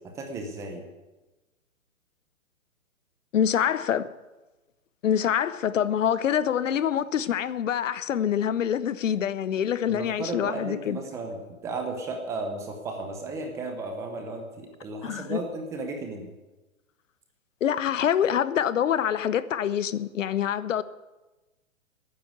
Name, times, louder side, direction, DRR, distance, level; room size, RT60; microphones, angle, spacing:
voice 1, 0.2-0.8 9.9-16.3, right 3 dB, 5° right, 0.7 m, -34 dB
voice 2, 3.3-4.1 5.0-11.0 15.0-15.4 17.6-20.8, left 9 dB, 60° left, 0.8 m, -25 dB
12.0 x 9.6 x 9.3 m
hypercardioid pair, 155°, 42 cm